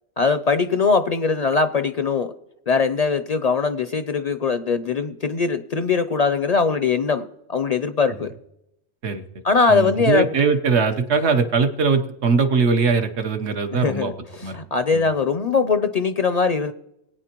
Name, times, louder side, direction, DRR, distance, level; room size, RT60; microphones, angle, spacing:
voice 1, 0.2-2.3 2.7-8.3 9.4-10.2 13.7-14.1 14.5-16.7, left 4 dB, 50° left, 10 dB, 0.5 m, -21 dB
voice 2, 9.7-14.1 14.4-14.6 14.9-15.0, right 5 dB, 85° right, 6 dB, 1.3 m, -21 dB
21.0 x 9.2 x 3.0 m, 0.83 s
omnidirectional pair, 1.1 m